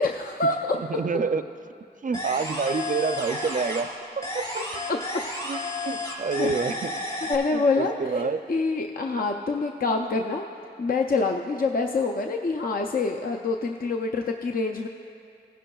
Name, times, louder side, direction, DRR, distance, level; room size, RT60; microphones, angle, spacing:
voice 1, 0.0-0.8 4.9-5.0 6.4-6.5 7.3-10.4 10.8-14.9, left 3 dB, 55° left, 3 dB, 0.5 m, -26 dB
voice 2, 0.7-1.4 2.0-3.9 4.2-4.5 5.4-5.6 5.8-6.9 7.5-8.4, right 5 dB, 50° right, 11 dB, 0.4 m, -27 dB
sound 1, 2.1-4.0 4.2-7.3, left 2 dB, 35° left, 2.9 m, -32 dB
17.5 x 10.0 x 2.3 m, 2.4 s
wide cardioid pair, 55°, 18 cm